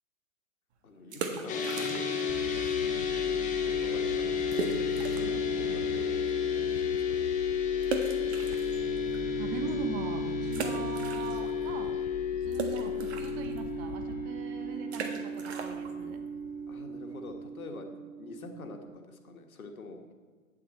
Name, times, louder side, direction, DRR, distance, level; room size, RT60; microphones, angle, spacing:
voice 1, 0.8-4.8 5.1-7.3 16.7-20.1, left 3 dB, 80° left, 4 dB, 1.6 m, -46 dB
sound 1, 1.0-2.4 2.6-2.7 3.3-3.4 3.7-3.8 4.5-5.4 5.9-6.0 7.8-9.2 9.7-9.8 10.5-11.7 11.9-17.4, right 5 dB, 50° right, 1.5 m, -38 dB
sound 2, 1.5-18.9, left 5 dB, 20° left, 1.4 m, -32 dB
sound 3, 2.3-14.2, left 7 dB, 40° left, 0.6 m, -44 dB
voice 2, 9.4-12.0 12.4-16.2, right 6 dB, 30° right, 7 dB, 1.1 m, -40 dB
11.5 x 8.9 x 4.3 m, 1.5 s
hypercardioid pair, 120°, 42 cm